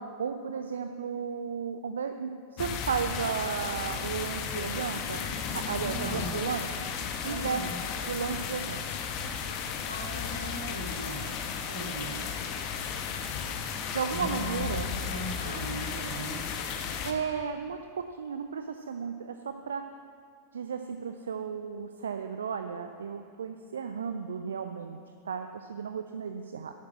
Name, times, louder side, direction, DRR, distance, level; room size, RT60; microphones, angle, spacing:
voice 1, 0.0-5.3 5.5-6.7 7.2-7.6 8.1-8.8 13.9-14.9 17.0-19.9 20.5-25.0 25.3-26.7, right 6 dB, 65° right, 7 dB, 0.5 m, -34 dB
sound 1, 2.6-17.1, left 7 dB, 40° left, 1.1 m, -34 dB
voice 2, 5.8-6.3 7.2-7.7 9.9-11.3 11.7-12.2 14.1-16.4, right 1 dB, 90° right, -5 dB, 3.2 m, -39 dB
12.0 x 8.6 x 7.3 m, 2.3 s
figure-of-eight pair, 90°, 0 cm